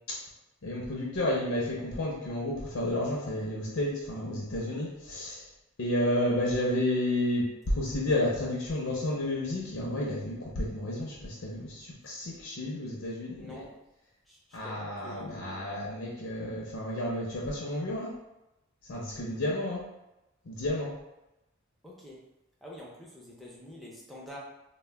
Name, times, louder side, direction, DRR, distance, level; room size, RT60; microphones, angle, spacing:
voice 1, 0.6-5.5 5.8-13.6 14.5-18.1 18.8-19.8 20.4-20.9, left 1 dB, 70° left, -4 dB, 0.6 m, -31 dB
voice 2, 13.4-13.7 14.3-15.6 21.8-22.2 22.6-24.4, left 1 dB, ahead, -5 dB, 0.5 m, -47 dB
2.2 x 2.1 x 3.3 m, 0.93 s
head